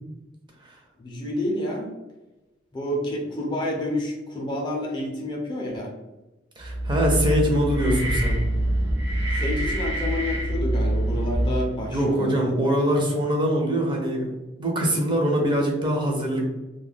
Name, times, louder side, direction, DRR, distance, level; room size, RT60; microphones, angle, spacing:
voice 1, 1.0-1.9 2.7-5.9 9.4-12.5, left 1 dB, 25° left, -1 dB, 0.5 m, -29 dB
voice 2, 6.6-8.4 11.9-16.5, equal, 25° right, 0 dB, 0.6 m, -23 dB
sound 1, 6.6-11.9, right 1 dB, 65° right, 0.6 m, -25 dB
2.3 x 2.1 x 3.3 m, 1.1 s
head